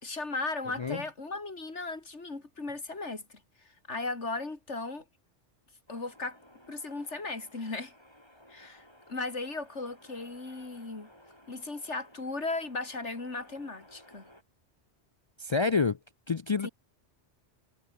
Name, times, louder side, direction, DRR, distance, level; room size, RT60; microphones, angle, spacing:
voice 1, 0.0-5.0 5.9-6.4 6.7-7.9 8.5-11.1 11.5-14.2 16.6-16.7, left 3 dB, 80° left, 3.7 m, -37 dB
sound 1, 5.9-14.4, equal, 20° left, 7.7 m, -57 dB
voice 2, 15.4-16.0 16.3-16.7, left 4 dB, 50° left, 0.3 m, -27 dB
omnidirectional pair, 1.2 m